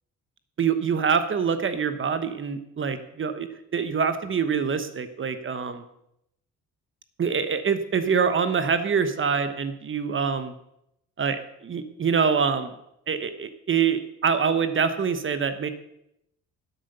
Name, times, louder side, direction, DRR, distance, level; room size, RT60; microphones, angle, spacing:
voice 1, 0.6-3.5 3.7-5.8 7.2-10.5 11.2-12.7 13.1-15.7, right 6 dB, 40° right, 11 dB, 1.1 m, -25 dB
10.5 x 8.2 x 6.7 m, 0.79 s
cardioid pair, 90°, 30 cm